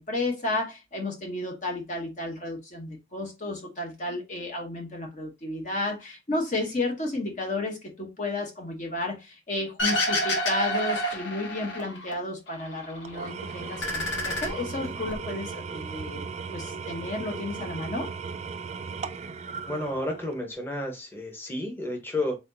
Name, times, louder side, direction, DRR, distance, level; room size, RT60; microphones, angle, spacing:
voice 1, 0.0-16.2 16.5-18.1, left 2 dB, 40° left, 0.9 m, -32 dB
sound 1, 9.8-12.1 12.5-13.3 13.6-15.1, left 1 dB, 85° left, 1.4 m, -29 dB
Engine / Tools, 13.0-20.5, right 5 dB, 35° right, 0.3 m, -37 dB
voice 2, 19.7-22.4, left 1 dB, 10° left, 0.9 m, -31 dB
4.2 x 3.9 x 2.6 m
head